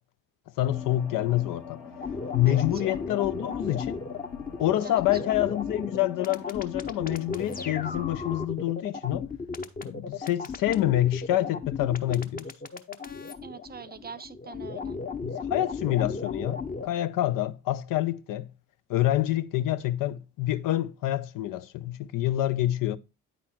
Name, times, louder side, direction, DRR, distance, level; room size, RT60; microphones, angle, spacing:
sound 1, 0.6-8.5, left 5 dB, 85° left, 2.0 m, -43 dB
voice 1, 0.6-1.8 2.3-4.0 4.6-9.3 9.8-12.5 15.2-18.5 18.9-23.0, left 14 dB, 60° left, 0.6 m, -27 dB
sound 2, 2.0-16.9, left 4 dB, 25° left, 0.9 m, -35 dB
voice 2, 4.8-5.2 13.4-15.0, right 6 dB, 25° right, 0.5 m, -43 dB
8.9 x 4.3 x 4.3 m
hypercardioid pair, 55°, 38 cm